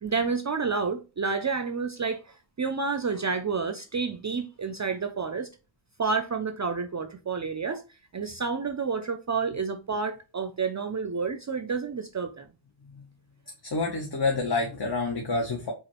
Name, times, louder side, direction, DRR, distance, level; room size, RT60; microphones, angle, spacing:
voice 1, 0.0-5.5 6.0-7.8 8.1-12.5, right 5 dB, 40° right, 0.4 m, -29 dB
voice 2, 13.6-15.7, left 3 dB, 50° left, 0.9 m, -28 dB
4.9 x 2.5 x 2.9 m
wide cardioid pair, 65°, 49 cm